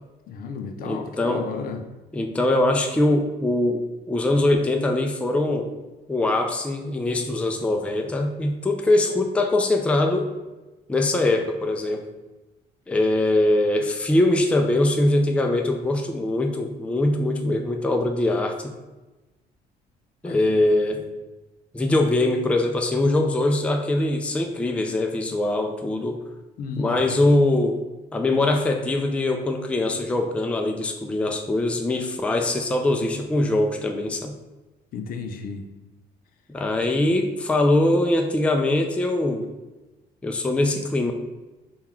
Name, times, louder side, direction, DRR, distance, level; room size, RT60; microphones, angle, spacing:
voice 1, 0.3-1.8 20.2-20.5 26.6-27.2 34.9-35.7, left 5 dB, 60° left, 6 dB, 0.5 m, -33 dB
voice 2, 0.8-1.5 2.1-3.8 4.1-5.7 6.1-10.3 10.9-12.1 12.9-18.6 20.2-21.0 21.7-26.2 26.8-27.8 28.1-34.3 36.5-39.5 40.2-41.1, left 2 dB, 5° left, 3 dB, 0.4 m, -22 dB
3.7 x 2.3 x 4.4 m, 1.1 s
cardioid pair, 110°, 17 cm